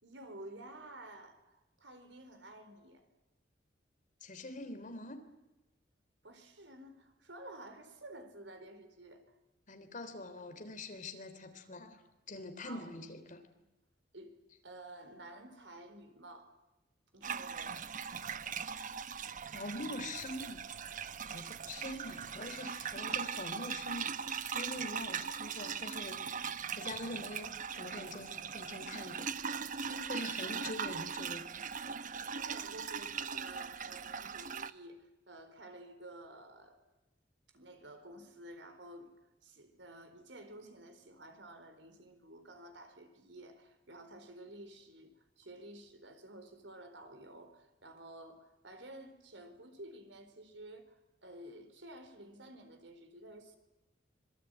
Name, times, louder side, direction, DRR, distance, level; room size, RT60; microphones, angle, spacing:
voice 1, 0.0-3.0 6.2-9.4 12.6-12.9 14.1-14.4 14.6-16.5 17.1-17.9 29.9-31.1 31.3-31.4 32.4-36.8 37.5-39.1 39.4-53.6, right 1 dB, 85° right, 8 dB, 4.3 m, -52 dB
voice 2, 4.2-5.2 9.7-12.0 12.3-13.4 19.5-20.6 21.3-29.3 30.1-31.4, left 2 dB, 45° left, 7 dB, 3.4 m, -44 dB
sound 1, 17.2-34.7, right 6 dB, 45° right, 0.9 m, -40 dB
25.5 x 23.0 x 9.2 m, 0.97 s
head